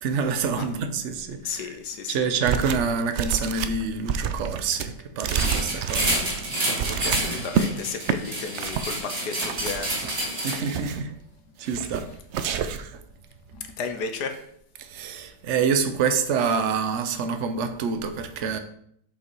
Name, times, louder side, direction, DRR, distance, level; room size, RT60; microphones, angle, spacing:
voice 1, 0.0-1.8 2.1-6.3 6.6-7.5 10.4-11.1 11.6-12.1 14.8-18.6, right 5 dB, 55° right, 0.9 m, -27 dB
voice 2, 1.4-2.2 7.0-10.0 13.5-14.4, left 5 dB, 75° left, 1.3 m, -33 dB
sound 1, 2.4-2.9 3.1-7.7 8.0-8.2 8.5-8.9 9.4-10.1 10.5-11.1 11.6-12.0 12.3-12.9, right 7 dB, 80° right, 0.6 m, -29 dB
sound 2, 5.3-10.9, right 1 dB, 35° right, 2.2 m, -29 dB
7.0 x 5.3 x 4.6 m
omnidirectional pair, 1.8 m